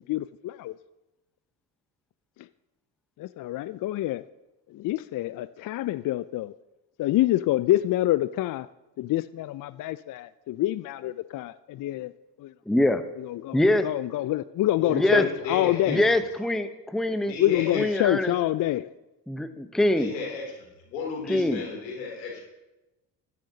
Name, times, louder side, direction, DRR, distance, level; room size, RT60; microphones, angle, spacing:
voice 1, 0.1-0.7 2.4-2.5 3.2-4.2 4.7-6.5 7.0-8.7 9.0-12.1 12.4-12.5 13.2-16.1 17.4-18.9, left 15 dB, 40° left, 0.4 m, -27 dB
voice 2, 12.7-13.0 13.5-13.9 14.9-15.2 15.9-16.7 16.9-17.3 17.7-18.3 19.3-20.1 21.3-21.6, left 1 dB, ahead, 0.8 m, -23 dB
voice 3, 14.8-16.2 17.3-17.8 20.0-22.5, left 4 dB, 85° left, 3.1 m, -34 dB
15.0 x 10.5 x 2.8 m
hypercardioid pair, 55°, 50 cm